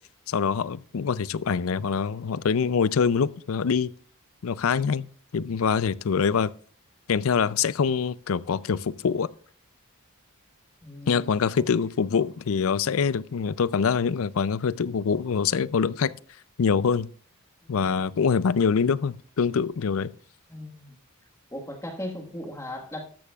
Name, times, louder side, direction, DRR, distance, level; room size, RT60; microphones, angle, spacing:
voice 1, 0.3-3.9 4.4-5.1 5.3-6.5 7.1-9.3 11.1-16.1 16.6-17.1 17.7-20.1, left 6 dB, 70° left, 0.4 m, -24 dB
voice 2, 10.8-11.3 20.5-20.9 21.5-23.0, left 1 dB, 15° left, 1.5 m, -37 dB
13.5 x 12.0 x 2.4 m
head